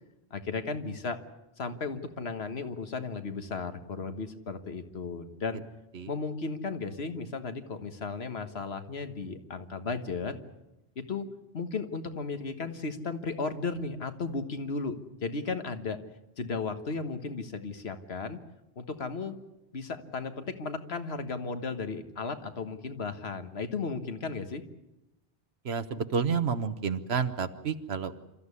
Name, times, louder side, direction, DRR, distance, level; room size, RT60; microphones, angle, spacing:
voice 1, 0.3-1.2 1.6-5.6 6.1-10.3 10.9-11.3 11.5-16.0 16.4-18.4 18.7-19.4 19.7-24.6, left 4 dB, 75° left, 9 dB, 1.7 m, -35 dB
voice 2, 25.6-28.2, right 6 dB, 75° right, 10 dB, 1.3 m, -30 dB
27.5 x 14.0 x 9.8 m, 0.92 s
omnidirectional pair, 1.1 m